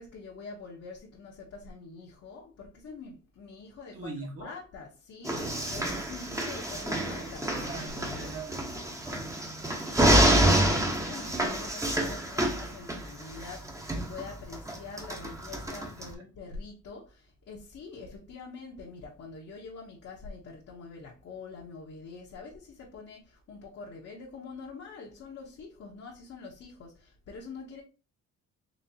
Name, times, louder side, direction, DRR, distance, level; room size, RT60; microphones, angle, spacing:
voice 1, 0.0-4.1 4.4-7.5 10.1-27.8, left 4 dB, 55° left, 1.0 m, -45 dB
voice 2, 3.9-4.5 5.3-6.0 7.5-9.5 15.2-15.8, right 2 dB, 50° right, 1.4 m, -43 dB
sound 1, 5.2-16.1, right 1 dB, 10° right, 0.9 m, -28 dB
4.2 x 2.8 x 2.8 m
cardioid pair, 90°, 30 cm